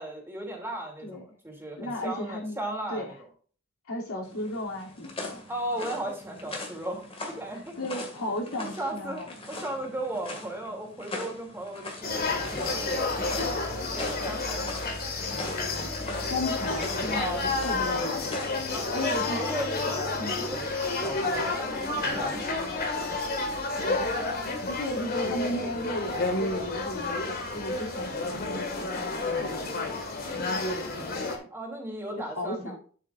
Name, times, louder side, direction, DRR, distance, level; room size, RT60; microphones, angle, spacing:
voice 1, 0.0-3.2 5.5-7.0 7.3-7.6 8.6-9.2 9.5-14.8 15.2-15.3 17.2-17.5 18.7-23.0 31.5-32.7, right 1 dB, 10° right, 0 dB, 2.9 m, -36 dB
voice 2, 1.8-2.6 2.9-3.1 3.8-5.4 7.5-9.3 16.3-17.3 17.6-18.3 18.8-19.5 20.2-20.5 24.0-24.3 24.6-29.9 30.3-31.4 32.4-32.8, left 1 dB, 80° left, -2 dB, 3.0 m, -35 dB
sound 1, 4.2-19.4, left 2 dB, 25° left, 2.2 m, -42 dB
sound 2, 12.0-31.4, left 3 dB, 45° left, 2.1 m, -30 dB
9.7 x 8.4 x 2.6 m, 0.42 s
head